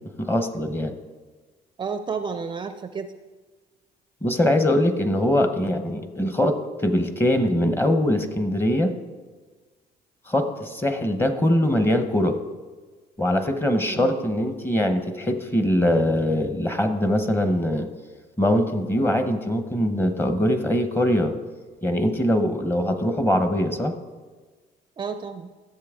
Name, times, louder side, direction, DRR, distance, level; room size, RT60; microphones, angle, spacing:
voice 1, 0.2-0.9 4.2-8.9 10.3-12.4 13.2-17.9 18.4-21.3 21.8-23.9, left 1 dB, 15° left, 8 dB, 0.9 m, -22 dB
voice 2, 1.8-3.1 13.9-14.1 25.0-25.5, right 5 dB, 30° right, 9 dB, 0.4 m, -31 dB
13.5 x 7.5 x 3.7 m, 1.4 s
cardioid pair, 110°, 17 cm